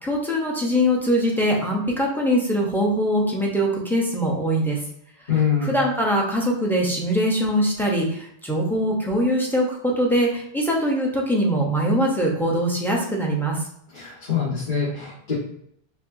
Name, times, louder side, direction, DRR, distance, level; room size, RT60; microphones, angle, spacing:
voice 1, 0.0-4.8 5.6-13.6, equal, ahead, -2 dB, 0.6 m, -22 dB
voice 2, 5.3-5.7 13.9-15.3, left 7 dB, 50° left, -10 dB, 1.4 m, -24 dB
4.4 x 2.7 x 2.6 m, 0.71 s
omnidirectional pair, 1.0 m